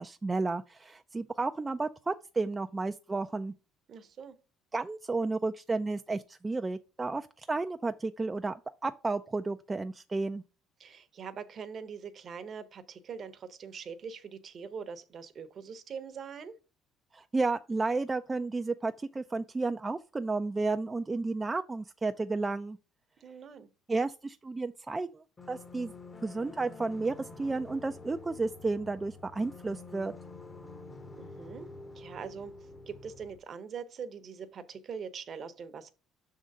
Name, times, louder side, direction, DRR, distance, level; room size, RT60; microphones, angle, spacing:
voice 1, 0.0-3.5 4.7-10.4 17.1-22.8 23.9-25.9 26.2-30.1, right 3 dB, 20° right, 0.3 m, -32 dB
voice 2, 3.9-4.4 10.8-16.5 23.2-23.7 31.2-31.7 31.9-32.5 32.9-35.9, right 6 dB, 45° right, 0.8 m, -43 dB
sound 1, 25.4-33.4, left 3 dB, 25° left, 0.8 m, -48 dB
6.1 x 3.8 x 5.3 m
supercardioid pair, 95°, 0 cm